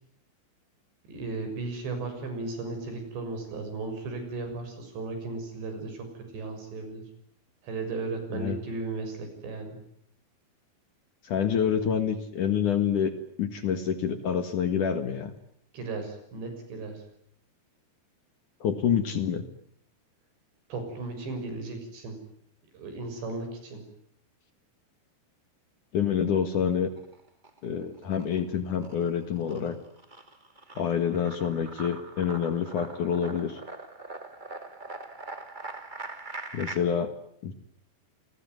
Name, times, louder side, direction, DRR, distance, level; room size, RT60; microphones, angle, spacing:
voice 1, 1.1-7.0 7.6-9.8 15.7-17.0 20.7-22.2 22.7-23.8, right 3 dB, 75° right, 7 dB, 8.7 m, -35 dB
voice 2, 11.2-13.1 13.4-15.3 18.6-19.4 25.9-26.9 27.6-29.8 30.8-33.6 36.5-37.1 37.4-37.5, left 8 dB, 55° left, 10 dB, 2.7 m, -27 dB
sound 1, 26.8-27.6 28.0-36.8, right 2 dB, 50° right, 0.5 m, -42 dB
29.5 x 21.5 x 9.4 m, 0.68 s
omnidirectional pair, 5.1 m